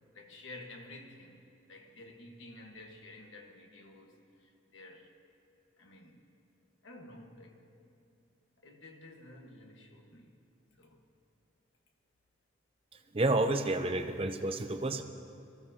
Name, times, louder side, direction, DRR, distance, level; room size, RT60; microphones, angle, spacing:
voice 1, 0.1-1.4 1.7-5.1 5.8-6.2 6.8-7.7 8.6-10.4 10.8-11.0, left 2 dB, 70° left, 1.5 m, -51 dB
voice 2, 13.1-15.0, right 2 dB, 25° right, 0.6 m, -30 dB
23.5 x 14.5 x 2.9 m
head